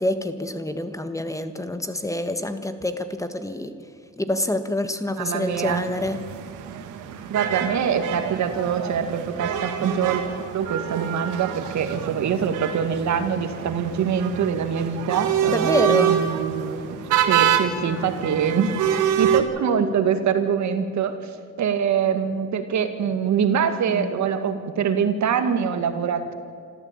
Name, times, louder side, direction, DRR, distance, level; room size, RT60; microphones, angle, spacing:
voice 1, 0.0-3.7 4.2-6.2 15.5-16.1 23.9-24.1, left 1 dB, 10° left, 9 dB, 1.5 m, -26 dB
voice 2, 5.2-5.9 7.3-10.2 10.5-17.0 17.3-21.1 21.6-26.3, right 7 dB, 70° right, 8 dB, 2.0 m, -24 dB
sound 1, 5.5-19.4, right 9 dB, 90° right, 1.9 m, -26 dB
27.0 x 13.5 x 8.9 m, 2.2 s
cardioid pair, 90°, 30 cm